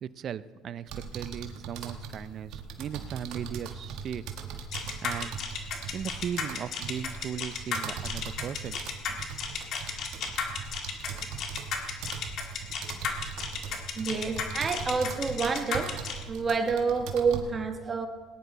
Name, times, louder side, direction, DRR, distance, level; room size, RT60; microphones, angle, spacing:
voice 1, 0.0-4.2 5.0-5.3 5.9-8.8, right 9 dB, 50° right, 16 dB, 0.5 m, -37 dB
sound 1, 0.9-17.4, right 6 dB, 70° right, 1.7 m, -40 dB
sound 2, 4.7-16.2, left 6 dB, 55° left, 2.0 m, -33 dB
voice 2, 14.0-15.9 16.3-18.1, right 5 dB, 30° right, 6 dB, 1.4 m, -28 dB
19.0 x 10.0 x 4.0 m, 1.4 s
supercardioid pair, 100°, 0 cm